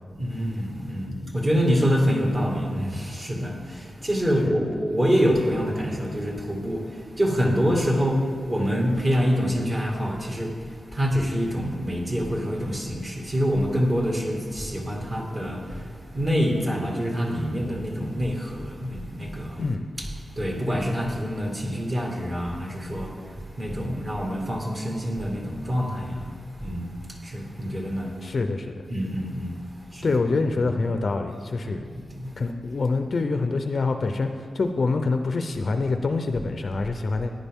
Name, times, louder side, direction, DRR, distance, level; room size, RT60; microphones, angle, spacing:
voice 1, 0.1-19.7 20.0-20.1 20.3-28.1 28.9-29.6 29.9-30.1 30.5-30.7 31.6-32.3, equal, 30° right, 0 dB, 2.0 m, -26 dB
voice 2, 28.2-28.8 30.0-31.9 32.4-37.3, left 3 dB, 45° left, 6 dB, 0.6 m, -26 dB
14.5 x 10.5 x 3.6 m, 2.2 s
wide cardioid pair, 135°, 0 cm